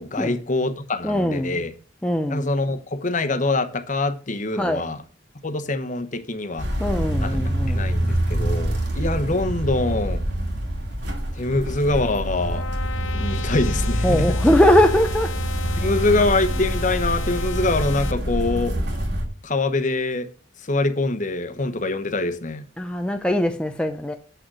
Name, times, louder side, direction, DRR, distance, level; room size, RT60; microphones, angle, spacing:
voice 1, 0.0-1.7 2.3-5.0 5.4-6.7 7.2-7.4 7.7-10.2 11.3-12.6 13.1-14.3 15.8-18.8 19.4-20.3 20.6-22.6, left 2 dB, 40° left, 1.0 m, -24 dB
voice 2, 1.0-1.6 2.0-2.5 4.6-4.8 6.8-8.2 14.0-15.4 22.8-24.1, left 1 dB, 5° left, 0.6 m, -21 dB
sound 1, 6.6-19.3, equal, 60° right, 2.4 m, -25 dB
sound 2, 11.6-18.1, left 6 dB, 85° left, 0.9 m, -35 dB
8.0 x 6.4 x 6.1 m
head